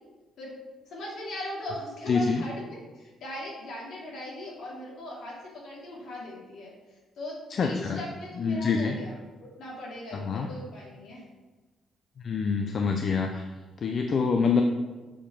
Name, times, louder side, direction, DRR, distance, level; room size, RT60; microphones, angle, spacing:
voice 1, 0.9-9.1 9.4-11.3, left 1 dB, 75° left, -5 dB, 2.8 m, -39 dB
voice 2, 2.1-2.4 7.5-8.0 8.4-8.9 10.1-10.5 12.2-13.4 13.8-14.6, left 5 dB, 50° left, 4 dB, 0.6 m, -26 dB
6.9 x 4.9 x 5.6 m, 1.3 s
cardioid pair, 90°, 0 cm